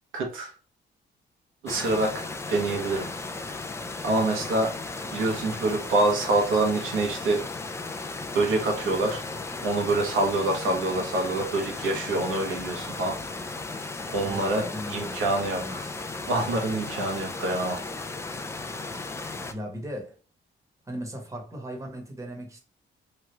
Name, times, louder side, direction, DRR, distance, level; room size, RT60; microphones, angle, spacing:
voice 1, 0.1-0.5 1.6-3.1 4.0-4.7 5.1-7.4 8.3-9.2 9.6-13.2 14.1-15.8 16.3-17.8, right 2 dB, 85° right, 1.0 m, -26 dB
sound 1, 1.7-19.5, left 3 dB, 15° left, 0.3 m, -36 dB
voice 2, 14.2-16.0 19.5-20.2 20.9-22.6, equal, 15° right, 1.0 m, -38 dB
3.0 x 2.4 x 3.2 m
cardioid pair, 90°, 20 cm